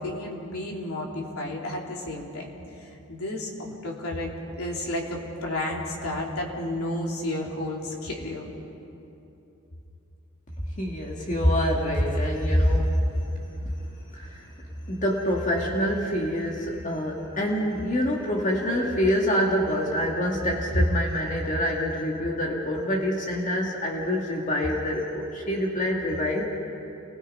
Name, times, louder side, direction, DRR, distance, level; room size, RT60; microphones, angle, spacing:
voice 1, 0.0-2.5 2.8-8.5, left 1 dB, 85° left, -1 dB, 3.5 m, -32 dB
voice 2, 10.8-12.9 14.2-14.4 14.9-26.5, equal, 35° left, -1 dB, 2.0 m, -25 dB
29.0 x 20.5 x 5.4 m, 2.9 s
head